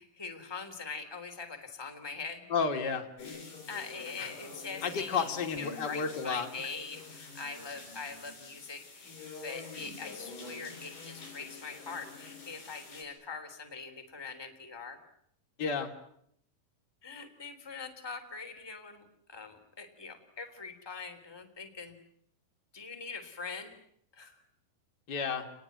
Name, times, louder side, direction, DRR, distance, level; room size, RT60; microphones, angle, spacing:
voice 1, 0.0-2.5 3.7-9.2 9.4-15.0 17.0-21.9 22.7-23.7 24.1-24.4, left 4 dB, 5° left, 5 dB, 3.2 m, -43 dB
voice 2, 2.5-3.1 4.2-4.3 4.8-6.5 15.6-15.9 25.1-25.5, left 5 dB, 30° left, 4 dB, 3.3 m, -31 dB
sound 1, 3.2-13.0, left 4 dB, 75° left, 8.3 m, -47 dB
29.0 x 21.0 x 9.4 m, 0.71 s
omnidirectional pair, 4.0 m